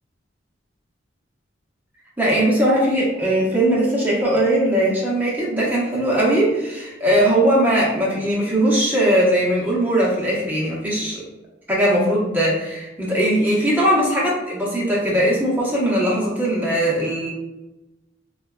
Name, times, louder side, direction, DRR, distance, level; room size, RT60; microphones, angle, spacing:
voice 1, 2.2-11.2 11.7-17.3, right 1 dB, 10° right, -6 dB, 0.9 m, -19 dB
4.5 x 2.3 x 2.2 m, 1.0 s
head